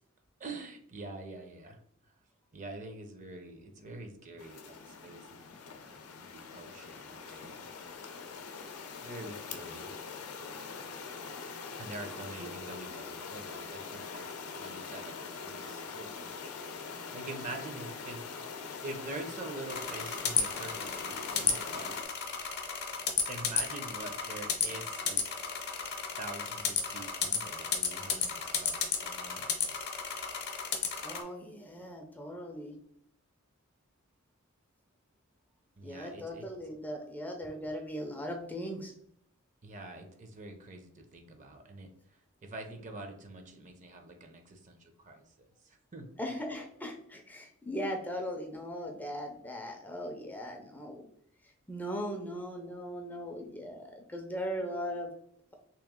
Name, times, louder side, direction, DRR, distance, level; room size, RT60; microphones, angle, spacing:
voice 1, 0.4-1.8 2.5-7.7 8.1-8.2 9.0-9.9 11.8-16.4 17.1-18.4 18.8-22.0 23.3-25.2 26.2-29.5 35.8-36.5 39.6-46.1, right 2 dB, 35° right, 5 dB, 0.6 m, -45 dB
sound 1, 4.4-22.0, left 5 dB, 90° left, 0.5 m, -43 dB
sound 2, 19.7-31.2, left 6 dB, 50° left, 0.7 m, -33 dB
voice 2, 31.0-32.7 35.8-38.9 46.2-51.1 51.7-55.1, equal, 10° left, 2 dB, 0.4 m, -39 dB
3.1 x 3.0 x 3.6 m, 0.72 s
head